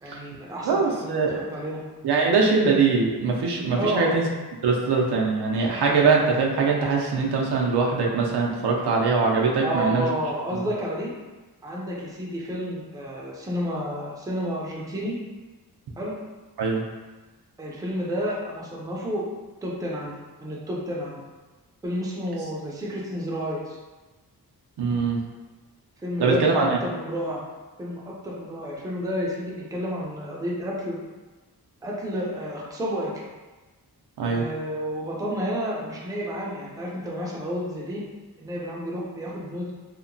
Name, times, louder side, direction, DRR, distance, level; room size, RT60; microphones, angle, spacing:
voice 1, 0.0-1.8 3.8-4.2 9.6-11.1 11.6-15.2 16.0-16.1 17.6-19.3 19.6-21.2 21.8-23.8 26.0-27.4 27.8-31.0 31.8-33.1 34.2-38.0 38.4-39.7, equal, 10° right, -4 dB, 0.4 m, -30 dB
voice 2, 0.6-1.4 2.0-4.3 4.6-10.1 16.6-16.8 24.8-25.2 26.2-26.8 34.2-34.4, right 4 dB, 75° right, -1 dB, 0.5 m, -22 dB
2.8 x 2.1 x 2.6 m, 1.2 s
wide cardioid pair, 135°, 40 cm